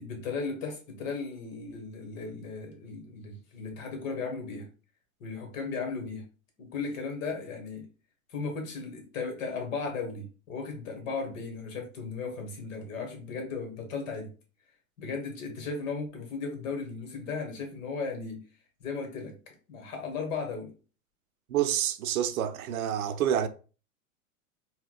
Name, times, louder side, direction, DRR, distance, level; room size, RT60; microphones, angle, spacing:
voice 1, 0.0-4.7 5.2-6.2 6.6-7.8 8.3-14.3 15.0-18.4 18.8-19.3 19.7-20.7, left 4 dB, 65° left, 1.5 m, -36 dB
voice 2, 21.5-23.5, right 10 dB, 80° right, 0.6 m, -28 dB
4.3 x 2.2 x 2.3 m
hypercardioid pair, 110°, 42 cm